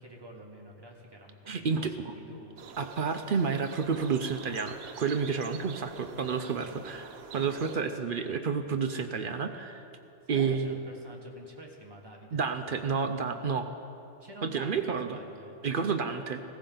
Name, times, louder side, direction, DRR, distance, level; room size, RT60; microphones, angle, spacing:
voice 1, 0.0-2.6 7.8-8.0 10.2-12.4 14.2-15.6, right 1 dB, 20° right, -1 dB, 1.5 m, -48 dB
voice 2, 1.5-2.1 2.8-9.8 10.3-10.8 12.3-13.7 14.4-15.2 15.6-16.5, right 5 dB, 60° right, 7 dB, 0.5 m, -30 dB
sound 1, 2.6-7.8, right 8 dB, 85° right, 1.1 m, -47 dB
16.0 x 14.5 x 3.9 m, 2.8 s
omnidirectional pair, 1.5 m